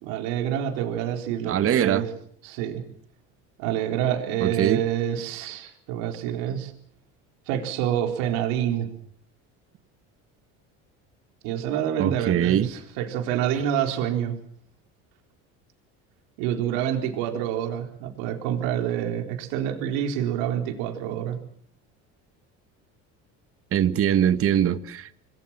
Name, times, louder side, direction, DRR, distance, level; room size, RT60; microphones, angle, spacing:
voice 1, 0.0-2.1 2.4-2.8 3.6-6.7 7.5-8.9 11.4-14.4 16.4-21.4, right 10 dB, 85° right, 4.1 m, -27 dB
voice 2, 1.5-2.0 4.4-4.8 12.0-12.7 23.7-25.2, right 10 dB, 45° right, 1.5 m, -22 dB
27.5 x 21.0 x 7.4 m
cardioid pair, 120°, 32 cm